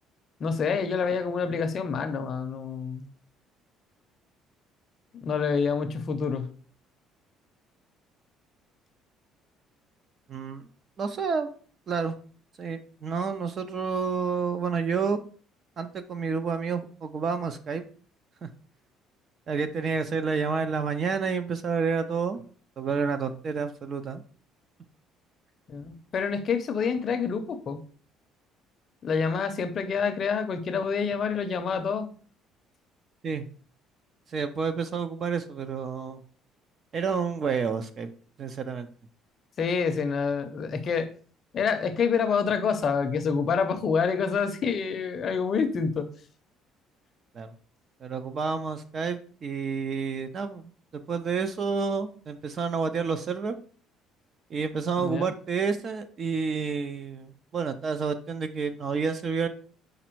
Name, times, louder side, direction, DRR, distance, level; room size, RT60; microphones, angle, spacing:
voice 1, 0.4-3.1 5.2-6.5 25.7-27.8 29.0-32.1 39.6-41.1 41.5-46.1 55.0-55.3, left 5 dB, 35° left, 8 dB, 0.6 m, -27 dB
voice 2, 10.3-10.7 11.0-11.5 11.9-12.2 12.6-15.2 15.8-17.8 18.4-18.5 19.5-22.4 22.8-24.2 33.2-33.4 34.3-36.2 36.9-38.1 38.4-38.9 47.3-47.5 48.0-53.6 54.5-59.5, right 5 dB, 35° right, 10 dB, 0.5 m, -29 dB
5.0 x 4.1 x 4.5 m, 0.43 s
cardioid pair, 170°, 0 cm